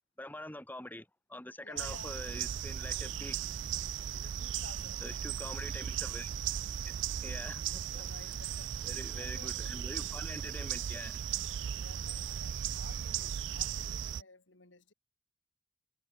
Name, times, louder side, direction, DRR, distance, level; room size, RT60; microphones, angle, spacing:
voice 1, 0.2-3.4 5.0-6.3 6.8-6.9 7.2-8.0 8.8-11.2, left 1 dB, 10° left, 1.7 m, -45 dB
voice 2, 1.6-2.1 4.1-5.2 7.9-8.8 9.1-9.6 11.8-14.9, left 3 dB, 70° left, 2.7 m, -54 dB
sound 1, 1.8-14.2, right 9 dB, 70° right, 0.4 m, -37 dB
head